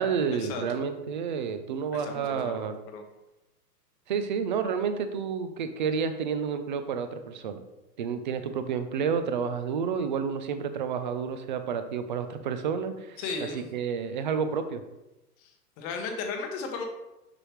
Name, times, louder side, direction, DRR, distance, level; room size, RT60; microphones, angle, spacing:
voice 1, 0.0-2.7 4.1-7.6 8.0-13.2 13.5-14.8, right 6 dB, 35° right, 9 dB, 0.4 m, -30 dB
voice 2, 1.9-3.0 13.2-13.7 15.4-15.5 15.8-16.8, left 4 dB, 25° left, 3 dB, 0.8 m, -35 dB
6.7 x 5.6 x 3.0 m, 0.99 s
hypercardioid pair, 145°, 47 cm